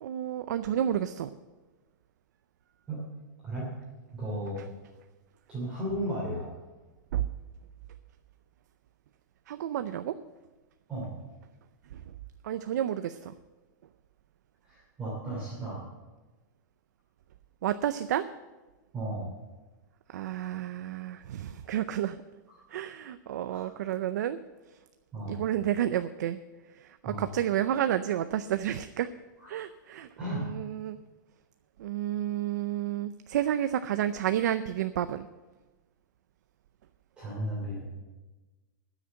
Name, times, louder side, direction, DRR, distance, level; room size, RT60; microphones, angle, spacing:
voice 1, 0.0-1.3 7.1-7.3 9.5-10.2 11.9-12.0 12.4-13.3 17.6-18.3 20.1-22.2 22.7-24.4 25.3-26.4 26.7-29.1 29.5-31.0 31.8-35.3, right 11 dB, 60° right, 11 dB, 0.5 m, -30 dB
voice 2, 4.1-4.6 5.5-6.5 10.9-11.1 14.6-15.8 18.9-19.3 22.5-22.6 23.5-23.6 25.1-25.4 27.0-27.2 29.4-29.5 30.2-30.5 37.2-37.8, right 1 dB, 10° right, -7 dB, 2.9 m, -34 dB
12.5 x 6.6 x 8.8 m, 1.2 s
supercardioid pair, 175°, 10 cm